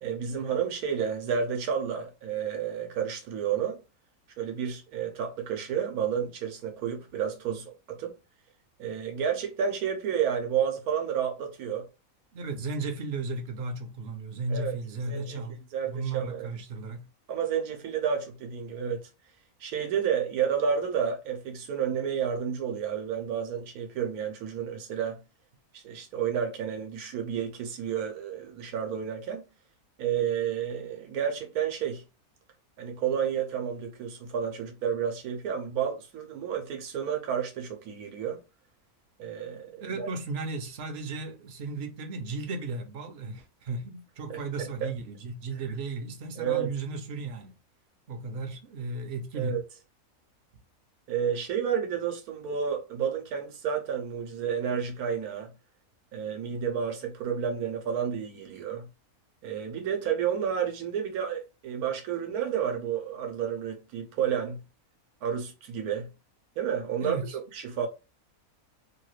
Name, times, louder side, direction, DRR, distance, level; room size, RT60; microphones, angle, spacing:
voice 1, 0.0-3.8 4.4-8.1 8.8-11.8 14.5-14.7 15.1-15.4 15.7-16.5 17.3-19.0 19.6-25.2 25.7-29.4 30.0-32.0 32.8-38.4 39.2-40.1 44.3-44.9 46.4-46.7 49.3-49.6 51.1-55.5 56.1-58.9 59.4-64.6 65.2-66.1 66.6-67.2 67.5-67.9, right 8 dB, 90° right, 1.2 m, -31 dB
voice 2, 12.3-17.1 39.8-47.5 48.1-49.6 67.0-67.4, right 3 dB, 60° right, 0.7 m, -35 dB
2.9 x 2.3 x 3.1 m
omnidirectional pair, 1.5 m